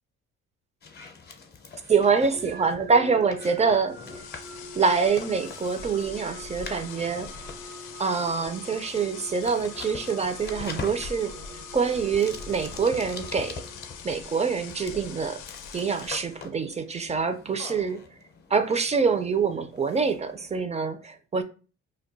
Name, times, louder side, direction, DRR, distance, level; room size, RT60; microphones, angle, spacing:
sound 1, 0.8-20.6, left 5 dB, 35° left, 0.6 m, -45 dB
voice 1, 1.9-4.0 4.8-7.4 8.0-13.6 14.0-15.4 15.7-18.0 18.5-21.4, right 5 dB, 25° right, 0.4 m, -25 dB
sound 2, 2.3-14.3, right 1 dB, 90° right, 0.7 m, -46 dB
sound 3, 3.9-16.4, left 7 dB, 85° left, 0.5 m, -43 dB
2.2 x 2.2 x 3.8 m
cardioid pair, 90°, 30 cm